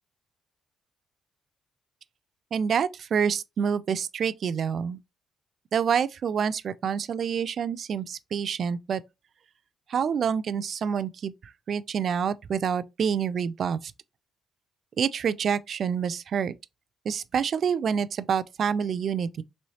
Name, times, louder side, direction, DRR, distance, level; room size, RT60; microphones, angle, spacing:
voice 1, 2.5-5.0 5.7-9.0 9.9-11.3 11.7-13.9 15.0-16.5 17.1-19.4, right 7 dB, 55° right, 0.3 m, -27 dB
3.1 x 3.1 x 2.7 m
cardioid pair, 90°, 0 cm